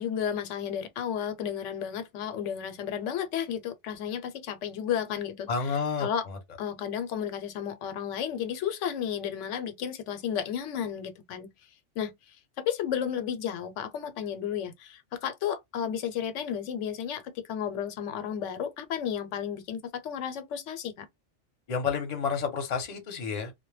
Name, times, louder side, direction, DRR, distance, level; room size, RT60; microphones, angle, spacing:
voice 1, 0.0-6.3 6.6-11.5 12.0-12.1 12.6-21.1, left 9 dB, 85° left, 0.9 m, -33 dB
voice 2, 5.5-6.4 21.7-23.5, left 5 dB, 40° left, 0.7 m, -30 dB
2.1 x 2.1 x 3.1 m
omnidirectional pair, 1.2 m